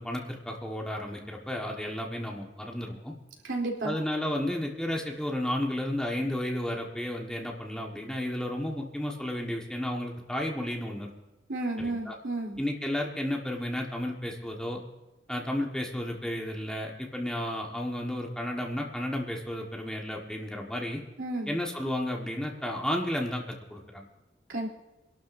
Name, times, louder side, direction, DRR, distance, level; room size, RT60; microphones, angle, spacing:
voice 1, 0.0-3.1 3.8-11.1 11.8-12.1 12.6-14.8 15.3-21.0 21.5-24.1, left 1 dB, 5° left, -1 dB, 1.5 m, -32 dB
voice 2, 3.4-3.9 11.5-12.6 21.2-21.6 24.5-24.7, right 2 dB, 80° right, -1 dB, 3.3 m, -32 dB
26.5 x 12.0 x 2.7 m, 1.0 s
head